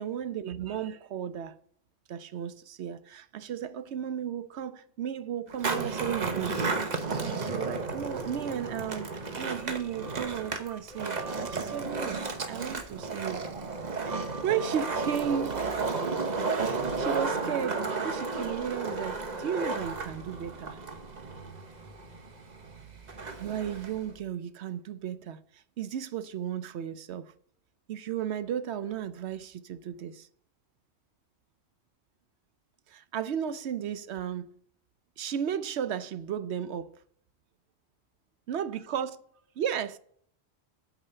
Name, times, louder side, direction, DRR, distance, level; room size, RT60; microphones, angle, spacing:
voice 1, 0.0-1.5 2.1-6.6 7.2-12.2 12.5-13.4 14.0-15.7 16.6-20.8 23.4-27.3 27.9-30.3 32.9-34.5 35.2-36.9 38.5-39.2 39.6-40.0, right 9 dB, 80° right, 0.9 m, -34 dB
Skateboard, 5.5-24.1, right 4 dB, 40° right, 1.0 m, -33 dB
sound 1, 8.0-9.0 9.3-9.4 9.6-15.6, right 3 dB, 60° right, 1.1 m, -48 dB
8.7 x 5.0 x 6.6 m
omnidirectional pair, 1.1 m